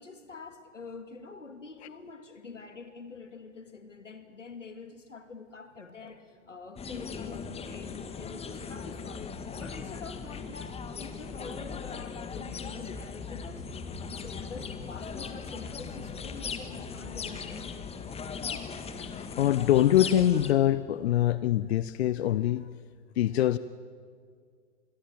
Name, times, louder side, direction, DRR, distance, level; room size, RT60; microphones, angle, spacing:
voice 1, 0.0-13.7 14.1-17.8, left 4 dB, 90° left, 8 dB, 2.5 m, -46 dB
sound 1, 6.8-20.5, left 5 dB, 15° left, 1.8 m, -39 dB
voice 2, 19.0-22.7 23.2-23.6, left 12 dB, 60° left, 16 dB, 0.7 m, -24 dB
27.0 x 22.0 x 7.4 m, 2.1 s
figure-of-eight pair, 100°, 36 cm